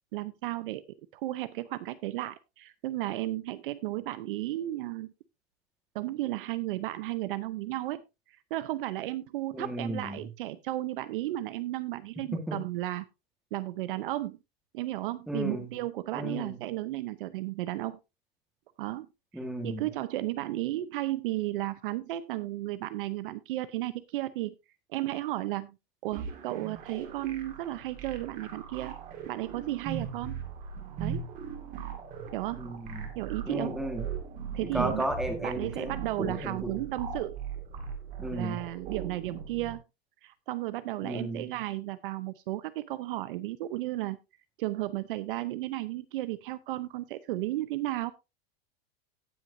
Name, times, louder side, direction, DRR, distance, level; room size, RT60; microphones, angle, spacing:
voice 1, 0.1-0.8 1.1-5.1 5.9-8.0 8.5-13.0 13.5-14.4 14.7-18.0 18.8-19.1 19.6-24.5 24.9-25.7 26.0-28.9 29.3-30.4 31.0-31.3 32.3-32.7 33.2-33.8 34.5-35.1 35.4-37.4 38.3-39.8 40.2-44.2 44.6-48.1, right 16 dB, 60° right, 15 dB, 0.7 m, -34 dB
voice 2, 9.5-10.2 12.5-12.6 15.3-15.7 16.1-16.6 19.3-19.9 32.5-33.1 33.5-34.1 34.6-36.9 38.2-38.6 41.0-41.5, right 1 dB, ahead, 4 dB, 1.5 m, -34 dB
sound 1, 26.1-39.7, right 6 dB, 25° right, 2.1 m, -39 dB
17.5 x 6.0 x 2.6 m, 0.25 s
supercardioid pair, 175°, 31 cm